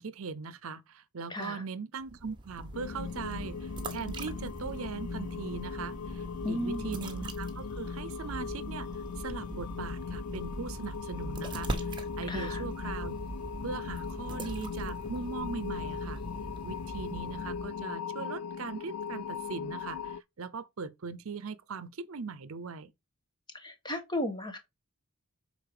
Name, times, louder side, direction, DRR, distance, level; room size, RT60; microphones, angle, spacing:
voice 1, 0.0-8.9 9.2-11.9 12.2-13.2 13.6-16.2 16.6-22.9, right 5 dB, 70° right, 0.6 m, -40 dB
voice 2, 1.3-1.6 6.4-6.9 12.3-12.6 23.5-24.6, left 1 dB, 20° left, 1.3 m, -34 dB
sound 1, 2.0-17.9, right 2 dB, 20° right, 1.3 m, -41 dB
sound 2, 2.7-20.2, left 6 dB, 85° left, 0.3 m, -39 dB
6.7 x 4.1 x 4.8 m
head